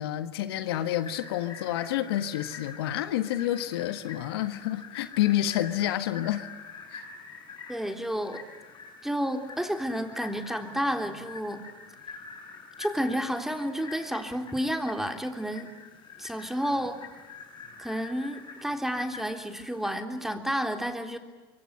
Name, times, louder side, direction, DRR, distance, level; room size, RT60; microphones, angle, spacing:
voice 1, 0.0-6.5 6.9-7.1, left 13 dB, 75° left, 1.5 m, -29 dB
sound 1, 0.6-19.9, left 5 dB, 35° left, 7.0 m, -46 dB
voice 2, 7.7-8.4 9.0-11.6 12.8-15.7 16.2-17.0 17.8-21.2, equal, 5° right, 3.6 m, -31 dB
25.5 x 24.0 x 9.7 m
hypercardioid pair, 80°, 13 cm